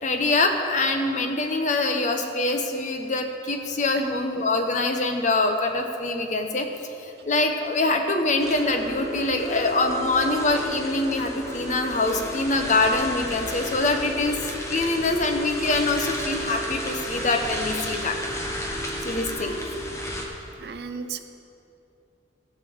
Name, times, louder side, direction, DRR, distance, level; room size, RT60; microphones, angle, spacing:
voice 1, 0.0-6.7 7.0-18.2 19.0-19.5, left 2 dB, 40° left, 5 dB, 0.9 m, -24 dB
sound 1, 8.4-20.2, equal, 15° left, 1.2 m, -32 dB
voice 2, 20.6-21.2, right 6 dB, 60° right, 8 dB, 0.6 m, -36 dB
15.5 x 5.3 x 7.0 m, 2.7 s
head